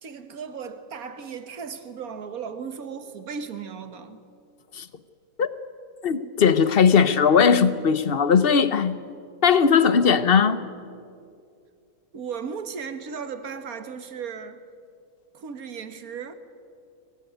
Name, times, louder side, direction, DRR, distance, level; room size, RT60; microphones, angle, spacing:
voice 1, 0.0-4.2 12.1-14.6 15.3-16.3, right 6 dB, 80° right, 1.8 m, -36 dB
voice 2, 6.0-9.0 9.4-10.6, left 6 dB, 45° left, 1.1 m, -18 dB
24.0 x 18.5 x 9.2 m
omnidirectional pair, 1.5 m